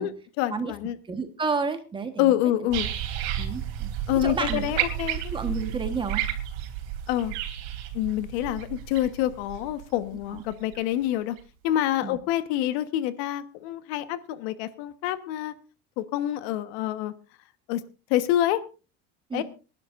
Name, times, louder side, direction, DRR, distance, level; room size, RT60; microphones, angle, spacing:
voice 1, 0.0-1.0 2.2-2.9 4.1-5.2 7.1-7.4 7.9-11.4 11.6-15.5 16.0-17.1 17.7-17.8 18.1-18.6 19.3-19.4, left 13 dB, 80° left, 12 dB, 1.3 m, -27 dB
voice 2, 1.1-2.4 3.4-3.9 4.2-5.0 5.3-6.2 10.3-10.4 12.0-12.2 19.3-19.4, right 4 dB, 15° right, 8 dB, 1.3 m, -31 dB
sound 1, 2.7-10.8 11.4-11.5, right 11 dB, 70° right, 3.3 m, -32 dB
26.5 x 11.5 x 2.6 m, 0.32 s
cardioid pair, 165°, 31 cm